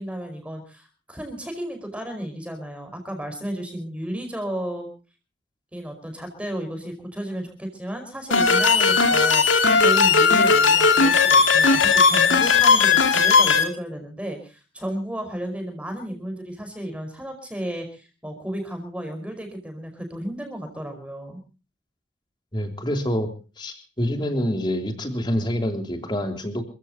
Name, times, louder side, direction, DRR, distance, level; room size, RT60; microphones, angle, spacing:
voice 1, 0.0-4.9 5.7-21.4, right 1 dB, 5° right, 5 dB, 4.9 m, -33 dB
sound 1, 8.3-13.6, left 5 dB, 85° left, 2.7 m, -17 dB
voice 2, 22.5-23.3 23.6-26.6, equal, 25° left, 5 dB, 3.1 m, -26 dB
28.0 x 16.0 x 2.9 m, 0.34 s
head